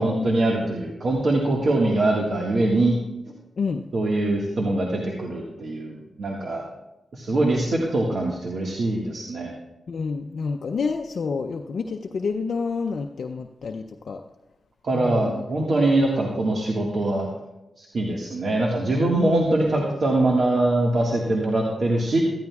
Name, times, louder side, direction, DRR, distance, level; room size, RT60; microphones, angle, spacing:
voice 1, 0.0-3.0 3.9-6.6 7.1-9.5 14.8-17.3 17.8-22.2, right 2 dB, 65° right, -2 dB, 1.7 m, -23 dB
voice 2, 9.9-14.2 14.9-15.4 19.1-19.5, left 5 dB, 70° left, 4 dB, 0.5 m, -28 dB
15.0 x 13.5 x 2.4 m, 0.95 s
cardioid pair, 45°, 0 cm